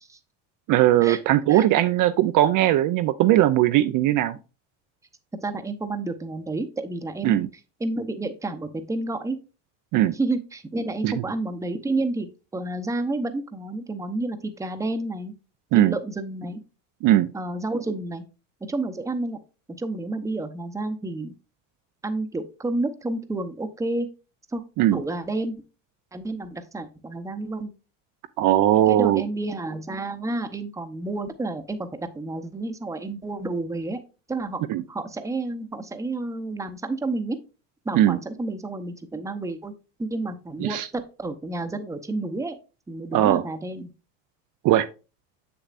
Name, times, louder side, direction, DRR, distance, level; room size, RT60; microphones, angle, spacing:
voice 1, 0.7-4.4 7.2-7.5 9.9-10.1 11.0-11.2 15.7-15.9 17.0-17.3 24.8-25.0 28.4-29.2 34.7-34.8 37.9-38.2 40.6-40.9 43.1-43.4 44.6-44.9, right 13 dB, 50° right, 10 dB, 0.5 m, -19 dB
voice 2, 5.4-7.4 7.8-9.4 10.1-15.3 15.8-16.6 17.3-18.2 18.7-19.4 19.7-21.3 22.0-24.1 24.5-24.6 24.9-25.6 26.1-27.7 28.9-34.0 34.3-34.6 34.9-37.4 37.8-39.7 40.0-42.6 42.9-43.9, right 2 dB, 10° right, 7 dB, 0.7 m, -30 dB
7.1 x 6.8 x 2.5 m, 0.32 s
supercardioid pair, 100°, 40 cm